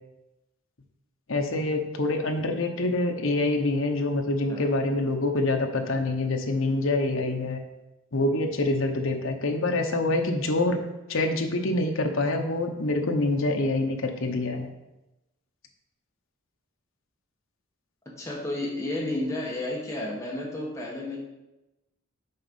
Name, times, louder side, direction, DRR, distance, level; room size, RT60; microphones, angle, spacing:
voice 1, 1.3-7.6 8.1-10.8 11.1-14.7, left 2 dB, 60° left, 4 dB, 0.9 m, -26 dB
voice 2, 18.2-21.2, left 1 dB, 15° left, -3 dB, 1.5 m, -31 dB
6.7 x 4.2 x 5.4 m, 0.97 s
head